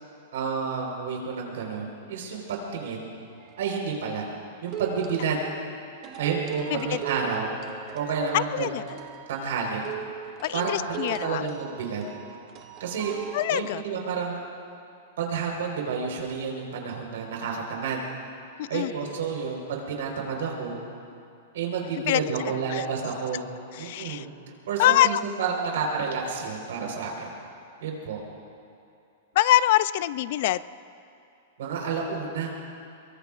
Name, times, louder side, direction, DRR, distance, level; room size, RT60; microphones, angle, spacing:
voice 1, 0.3-3.1 3.6-4.2 4.6-5.4 6.2-7.6 7.9-8.7 9.3-9.8 10.5-10.8 11.2-12.0 12.8-13.2 13.5-14.4 15.2-18.0 18.7-20.8 21.5-23.4 23.8-24.3 24.7-27.3 27.8-28.2 31.6-32.5, right 5 dB, 65° right, 0 dB, 4.1 m, -30 dB
sound 1, 3.4-3.9 4.7-5.6 6.0-13.7, right 9 dB, 25° right, 0.8 m, -39 dB
voice 2, 8.3-8.8 10.4-11.5 13.3-13.8 18.6-18.9 22.1-22.2 22.7-22.9 23.7-24.3 24.8-25.2 29.4-30.6, left 14 dB, 40° left, 17 dB, 0.3 m, -24 dB
24.5 x 23.0 x 2.5 m, 2.6 s
supercardioid pair, 180°, 0 cm